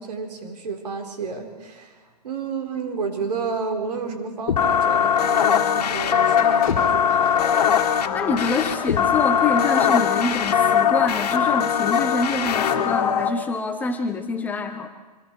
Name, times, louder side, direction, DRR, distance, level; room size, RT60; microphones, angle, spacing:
voice 1, 0.0-7.4, right 4 dB, 75° right, 4 dB, 4.1 m, -31 dB
sound 1, 4.5-13.3, left 8 dB, 70° left, 2.0 m, -20 dB
sound 2, 6.4-8.0, left 6 dB, 35° left, 4.5 m, -34 dB
voice 2, 8.1-14.9, left 3 dB, 10° left, 6 dB, 0.7 m, -26 dB
25.0 x 22.5 x 4.5 m, 1.3 s
hypercardioid pair, 155°, 21 cm